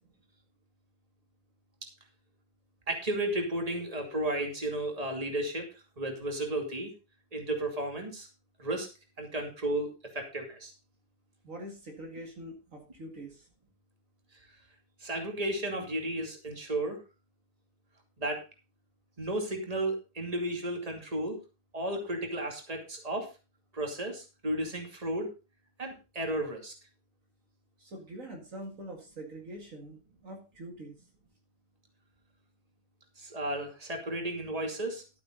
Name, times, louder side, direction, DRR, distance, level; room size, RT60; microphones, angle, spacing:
voice 1, 2.9-5.7 6.0-6.9 7.3-8.3 8.6-8.9 9.2-10.7 15.0-17.0 18.2-18.4 19.2-21.4 21.7-23.3 23.7-25.3 25.8-26.7 33.2-35.0, right 1 dB, 25° right, 3 dB, 2.6 m, -33 dB
voice 2, 11.4-13.5 27.8-30.9, right 1 dB, 60° right, 2 dB, 2.5 m, -44 dB
12.0 x 9.1 x 3.9 m, 0.29 s
omnidirectional pair, 1.5 m